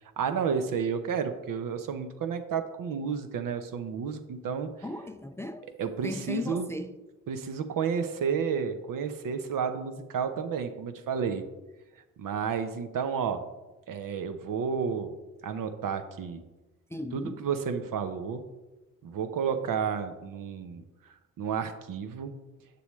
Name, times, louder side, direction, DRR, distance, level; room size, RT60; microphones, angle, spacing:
voice 1, 0.2-4.7 5.8-6.7 7.3-11.4 12.2-13.4 13.9-15.1 15.4-16.4 17.1-18.4 19.0-20.8 21.4-22.4, right 6 dB, 60° right, 0.9 m, -31 dB
voice 2, 4.8-5.7 6.0-7.0 16.9-17.4, left 1 dB, 5° left, 0.4 m, -36 dB
7.7 x 6.8 x 3.2 m
hypercardioid pair, 50°, 37 cm